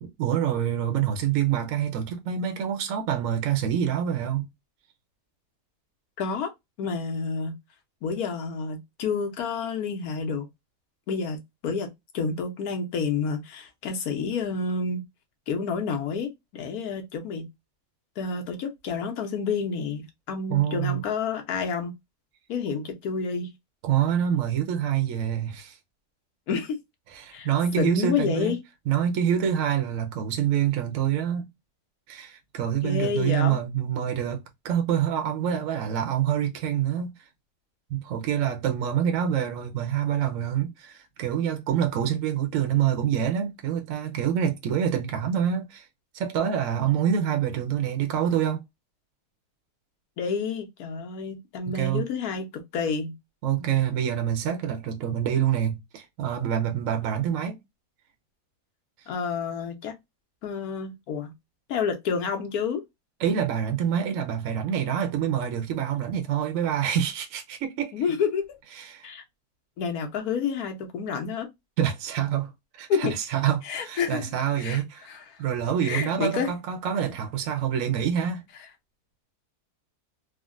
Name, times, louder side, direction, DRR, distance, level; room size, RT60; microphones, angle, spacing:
voice 1, 0.0-4.5 20.5-21.0 23.8-25.8 27.1-28.6 28.9-31.5 32.1-37.3 37.9-45.9 46.1-48.6 51.7-52.0 53.4-57.6 63.2-67.9 68.8-69.1 71.8-75.1 75.4-78.4, right 9 dB, 65° right, 0.9 m, -26 dB
voice 2, 6.2-6.5 6.8-7.6 8.0-10.5 11.1-11.9 12.1-15.0 15.5-17.5 18.2-21.9 22.5-23.5 26.5-26.8 27.3-27.5 27.8-28.6 32.8-33.6 50.2-53.1 59.1-59.9 60.4-61.3 61.7-62.8 67.9-68.5 69.0-69.2 69.8-71.5 72.9-73.1 73.6-74.3 74.6-75.4 75.8-76.5, left 5 dB, 65° left, 1.2 m, -29 dB
3.7 x 2.1 x 2.4 m
omnidirectional pair, 1.8 m